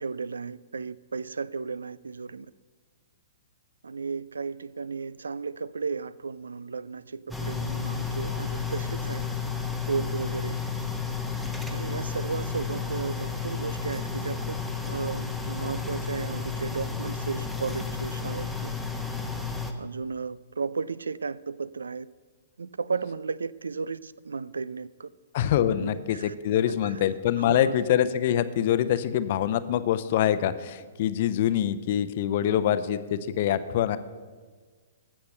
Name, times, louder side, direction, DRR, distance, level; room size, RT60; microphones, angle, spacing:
voice 1, 0.0-2.5 3.8-9.2 9.9-10.6 11.7-14.6 14.9-18.7 19.8-22.1 22.6-25.1 25.8-26.3 26.7-27.0 27.5-27.6, right 5 dB, 75° right, 0.3 m, -34 dB
sound 1, 7.3-19.7, left 5 dB, ahead, 1.0 m, -32 dB
voice 2, 25.3-34.0, left 10 dB, 50° left, 0.7 m, -25 dB
15.0 x 5.8 x 6.7 m
figure-of-eight pair, 115°, 0 cm